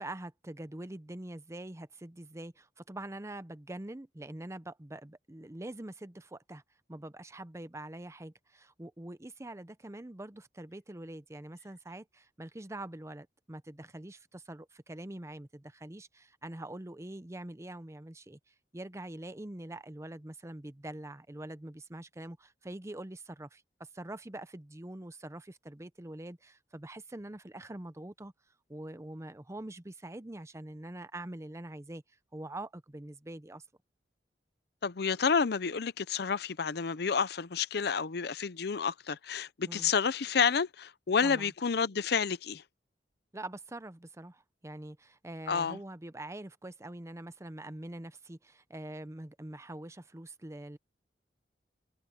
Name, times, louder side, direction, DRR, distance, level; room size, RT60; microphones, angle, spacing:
voice 1, 0.0-6.6 6.9-28.3 28.7-32.0 32.3-33.6 39.7-39.9 41.2-41.5 43.3-50.8, right 1 dB, 15° right, 0.7 m, -44 dB
voice 2, 34.8-42.6 45.5-45.8, left 6 dB, 65° left, 0.6 m, -30 dB
head